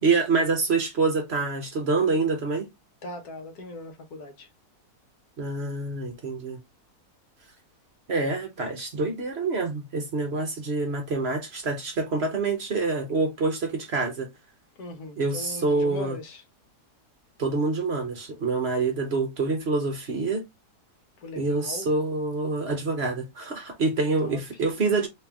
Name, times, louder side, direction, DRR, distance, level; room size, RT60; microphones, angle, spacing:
voice 1, 0.0-2.6 5.4-6.6 8.1-14.3 15.2-16.2 17.4-20.4 21.3-25.1, right 3 dB, 50° right, 1.0 m, -26 dB
voice 2, 3.0-4.5 14.8-16.4 21.2-21.9 24.2-24.4, left 2 dB, 75° left, 1.5 m, -39 dB
3.3 x 3.0 x 3.4 m
omnidirectional pair, 1.6 m